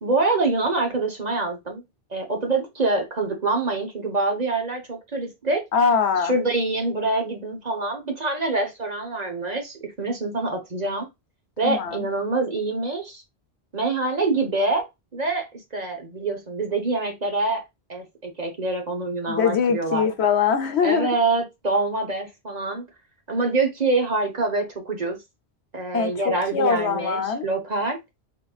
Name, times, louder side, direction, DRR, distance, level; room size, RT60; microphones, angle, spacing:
voice 1, 0.0-1.8 2.1-5.6 6.2-11.1 11.6-13.2 13.7-14.8 15.1-17.6 17.9-20.1 20.8-22.8 23.3-25.2 25.7-28.0, right 3 dB, 40° right, 1.1 m, -25 dB
voice 2, 5.7-6.3 11.6-12.0 19.3-21.1 25.9-27.5, left 6 dB, 80° left, 1.1 m, -22 dB
4.3 x 3.8 x 2.3 m
omnidirectional pair, 1.1 m